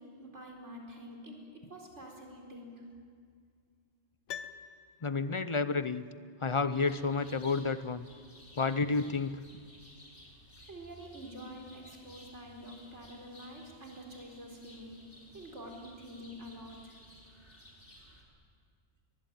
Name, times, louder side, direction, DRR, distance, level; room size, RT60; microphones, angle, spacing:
voice 1, 0.0-2.8 10.6-15.0 15.3-16.9, equal, 80° right, 0 dB, 4.6 m, -47 dB
Piano, 4.3-5.5 5.8-5.9, left 8 dB, 85° left, 1.1 m, -45 dB
voice 2, 5.0-6.0 6.4-8.1 8.6-9.4, left 4 dB, 35° left, 13 dB, 0.6 m, -30 dB
sound 1, 6.7-18.2, left 1 dB, 50° left, 3.9 m, -56 dB
23.0 x 20.0 x 9.0 m, 2.1 s
omnidirectional pair, 1.2 m